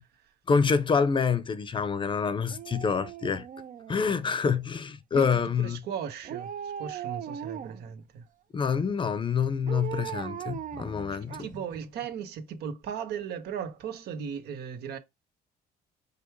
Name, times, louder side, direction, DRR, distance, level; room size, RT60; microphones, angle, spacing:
voice 1, 0.5-3.5 3.9-5.8 8.5-11.5, left 6 dB, 30° left, 0.6 m, -27 dB
Dog, 2.5-4.5 6.2-7.9 9.7-11.8 12.1-12.2, right 9 dB, 50° right, 0.6 m, -39 dB
voice 2, 5.1-8.3 11.1-15.0, right 7 dB, 70° right, 1.1 m, -37 dB
5.3 x 2.2 x 4.6 m
cardioid pair, 110°, 17 cm